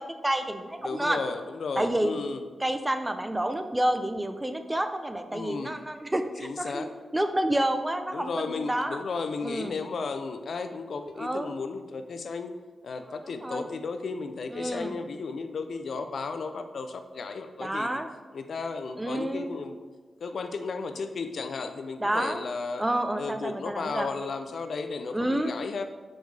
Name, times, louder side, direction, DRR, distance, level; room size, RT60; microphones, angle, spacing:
voice 1, 0.0-1.2 1.8-2.2 2.6-6.9 7.1-9.0 9.4-9.7 11.2-11.5 13.4-13.7 14.5-15.0 17.6-18.1 19.0-19.5 22.0-22.4 22.8-24.1 25.1-25.5, right 1 dB, 15° right, 8 dB, 0.6 m, -29 dB
voice 2, 0.8-2.4 5.3-5.8 6.4-6.9 8.1-12.5 12.8-18.0 18.3-19.8 20.2-22.8 23.2-25.8, left 4 dB, 70° left, 8 dB, 0.5 m, -34 dB
7.5 x 5.3 x 3.3 m, 1.4 s
cardioid pair, 55°, 0 cm